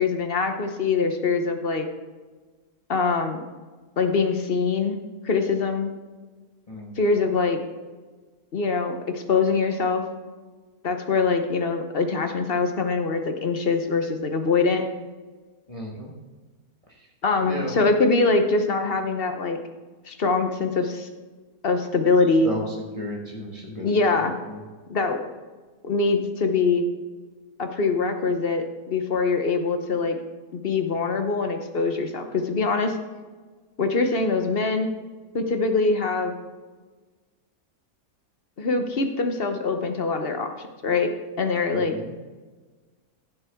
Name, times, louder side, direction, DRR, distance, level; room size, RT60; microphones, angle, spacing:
voice 1, 0.0-1.9 2.9-3.4 4.0-5.0 5.2-5.9 7.0-7.6 8.5-10.0 10.8-14.8 17.2-19.6 20.1-21.1 21.6-22.5 23.8-24.3 24.9-25.2 25.8-26.9 27.6-30.2 30.5-32.9 33.8-34.9 35.3-36.3 38.6-41.1 41.4-41.9, left 4 dB, 45° left, 6 dB, 1.0 m, -23 dB
voice 2, 6.7-7.0 15.7-16.1 16.9-17.1 17.4-17.7 22.4-24.6 41.7-42.1, equal, 25° left, -3 dB, 1.6 m, -34 dB
15.5 x 6.9 x 3.6 m, 1.3 s
omnidirectional pair, 1.6 m